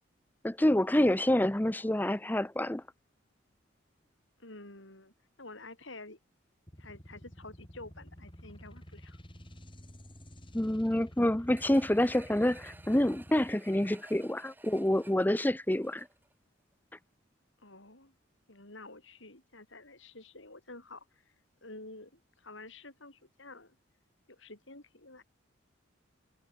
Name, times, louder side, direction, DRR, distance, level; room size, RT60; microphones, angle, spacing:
voice 1, 0.4-2.8 10.5-16.1, left 1 dB, 10° left, 0.6 m, -27 dB
voice 2, 4.4-5.1 5.4-6.2 6.8-9.2 13.8-13.9 17.6-18.1 18.5-21.1 21.6-23.8 24.3-25.2, left 2 dB, 70° left, 6.6 m, -49 dB
sound 1, 6.7-13.5, equal, 25° left, 7.4 m, -51 dB
sound 2, 11.5-16.3 16.7-16.8, right 2 dB, 10° right, 7.4 m, -55 dB
head